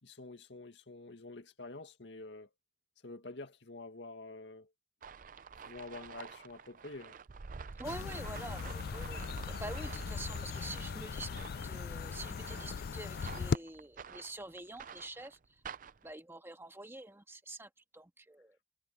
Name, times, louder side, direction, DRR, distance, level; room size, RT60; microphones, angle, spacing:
voice 1, 0.0-2.5 3.0-4.7 5.6-7.1, left 2 dB, 90° left, 2.0 m, -48 dB
sound 1, 5.0-16.1, right 5 dB, 50° right, 0.5 m, -48 dB
voice 2, 7.7-15.4 16.0-18.6, right 2 dB, 15° right, 1.6 m, -47 dB
sound 2, 7.8-13.6, left 5 dB, 60° left, 0.3 m, -39 dB
head